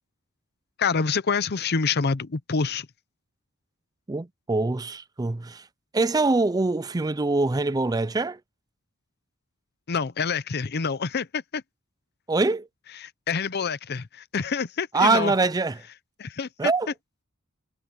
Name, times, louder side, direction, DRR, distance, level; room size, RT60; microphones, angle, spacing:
voice 1, 0.8-2.9 9.9-11.6 13.0-15.3 16.2-16.7, left 5 dB, 50° left, 0.7 m, -27 dB
voice 2, 4.1-5.7 5.9-8.4 12.3-12.7 14.9-15.8 16.6-16.9, right 3 dB, 20° right, 0.4 m, -24 dB
head